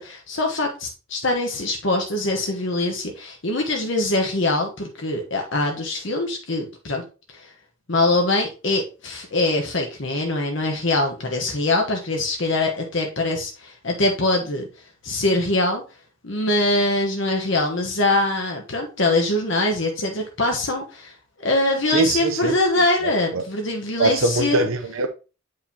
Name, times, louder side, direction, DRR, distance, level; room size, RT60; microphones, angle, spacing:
voice 1, 0.0-7.0 7.3-7.5 7.9-14.7 15.0-15.8 16.2-21.1 21.4-24.7, left 2 dB, 60° left, 1.1 m, -23 dB
voice 2, 21.9-22.5 23.3-23.4 24.0-25.1, right 2 dB, 70° right, 0.7 m, -22 dB
8.8 x 4.8 x 2.9 m
head